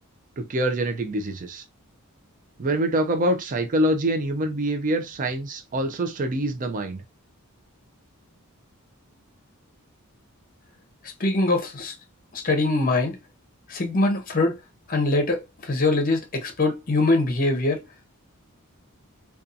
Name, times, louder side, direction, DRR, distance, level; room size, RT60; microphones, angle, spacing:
voice 1, 0.4-1.6 2.6-7.0, right 1 dB, 35° right, 0.4 m, -25 dB
voice 2, 11.2-11.9 12.3-13.2 13.7-14.6 14.9-17.8, left 2 dB, 40° left, 0.7 m, -23 dB
2.6 x 2.3 x 2.5 m
head